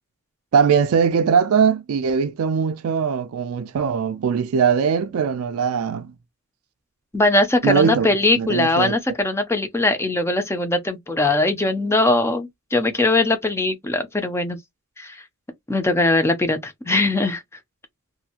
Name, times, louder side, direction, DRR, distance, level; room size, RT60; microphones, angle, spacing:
voice 1, 0.5-6.1 7.6-8.1 8.4-9.0, right 6 dB, 85° right, 0.4 m, -20 dB
voice 2, 7.1-14.6 15.0-15.2 15.7-17.4, left 2 dB, 10° left, 0.5 m, -21 dB
2.7 x 2.6 x 2.4 m
head